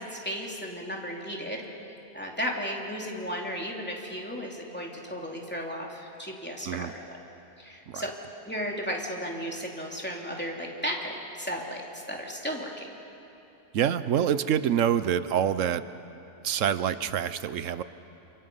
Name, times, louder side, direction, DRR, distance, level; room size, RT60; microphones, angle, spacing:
voice 1, 0.0-1.6 2.1-7.2 7.6-8.1 8.4-12.9, equal, 10° left, -1 dB, 3.1 m, -34 dB
voice 2, 13.7-15.8 16.4-17.8, right 9 dB, 85° right, 13 dB, 1.1 m, -26 dB
29.5 x 28.0 x 5.6 m, 2.9 s
omnidirectional pair, 1.3 m